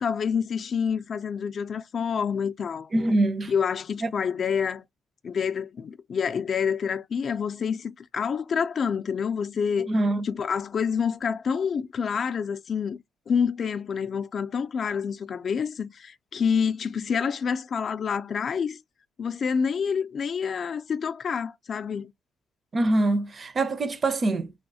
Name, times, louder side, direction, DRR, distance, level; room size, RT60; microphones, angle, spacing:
voice 1, 0.0-2.9 3.5-4.8 5.2-9.9 10.2-13.0 13.3-18.8 19.2-22.1, left 6 dB, 50° left, 0.3 m, -27 dB
voice 2, 2.9-3.5 4.0-4.1 9.8-10.3 22.7-24.5, right 2 dB, 35° right, 0.5 m, -24 dB
3.4 x 2.3 x 2.6 m
cardioid pair, 90°, 0 cm